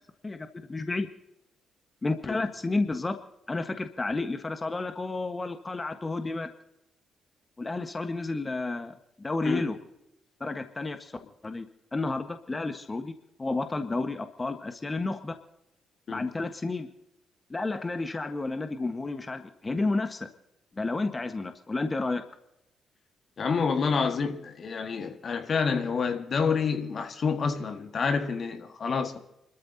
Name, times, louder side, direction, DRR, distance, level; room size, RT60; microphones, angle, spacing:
voice 1, 0.2-1.1 2.0-3.2 3.5-6.5 7.6-9.8 10.4-11.2 11.4-11.6 11.9-13.1 13.4-15.4 16.1-16.9 17.5-20.3 20.7-22.2, left 3 dB, 30° left, 1.4 m, -31 dB
voice 2, 23.4-29.2, left 5 dB, 50° left, 1.7 m, -28 dB
29.0 x 13.5 x 2.8 m
hypercardioid pair, 45°, 0 cm